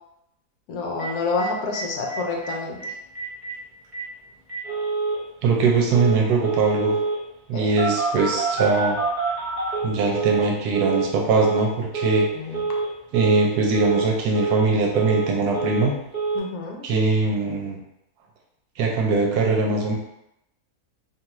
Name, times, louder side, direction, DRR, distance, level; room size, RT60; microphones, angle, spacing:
voice 1, 0.7-2.9 7.5-7.7 12.3-12.8 16.3-16.9, left 3 dB, 80° left, 0 dB, 1.1 m, -28 dB
Telephone, 1.0-1.1 1.4-1.5 1.7-1.8 2.1-2.5 2.8-2.9 3.2-3.5 3.9-4.0 4.5-5.2 5.9-6.2 6.4-7.2 7.8-10.5 10.7-11.1 11.3-11.7 11.9-12.3 12.5-12.9 13.1-13.5 13.7-14.1 14.3-15.3 15.5-15.9 16.1-16.4, right 4 dB, 30° right, 0.6 m, -26 dB
voice 2, 5.4-7.0 7.5-9.0 9.8-12.3 13.1-15.9 16.8-17.8 18.8-19.9, right 3 dB, 80° right, 0 dB, 1.1 m, -21 dB
2.8 x 2.3 x 3.0 m, 0.84 s
omnidirectional pair, 1.7 m